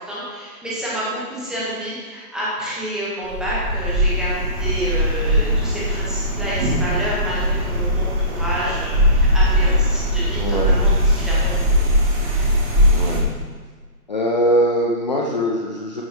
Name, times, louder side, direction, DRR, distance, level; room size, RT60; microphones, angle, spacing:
voice 1, 0.0-11.9 12.2-12.5, right 1 dB, ahead, -8 dB, 1.2 m, -29 dB
sound 1, 3.2-13.2, equal, 25° right, 2.6 m, -19 dB
voice 2, 10.3-10.8 12.9-13.2 14.1-16.0, equal, 30° left, -1 dB, 0.7 m, -21 dB
13.5 x 10.0 x 3.0 m, 1.5 s
figure-of-eight pair, 140°, 48 cm